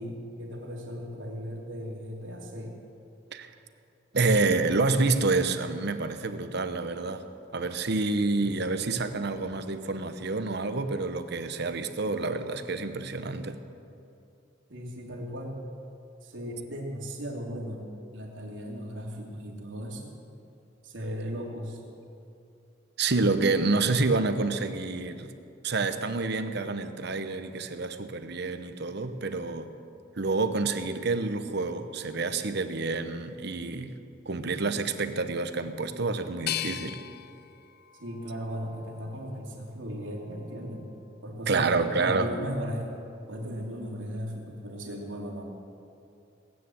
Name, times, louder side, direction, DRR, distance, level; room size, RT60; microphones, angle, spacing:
voice 1, 0.0-2.7 8.4-8.5 14.7-15.6 16.2-20.1 20.8-21.8 38.0-40.8 41.2-42.9 43.3-45.4, equal, 85° right, -1 dB, 2.9 m, -37 dB
voice 2, 4.1-7.2 7.5-13.6 23.0-25.3 25.6-29.7 30.2-33.9 34.3-37.0 41.5-42.3, right 3 dB, 60° right, 9 dB, 1.0 m, -28 dB
sound 1, 36.5-39.4 39.9-40.8, left 13 dB, 55° left, 0.4 m, -39 dB
19.0 x 9.8 x 7.7 m, 2.6 s
head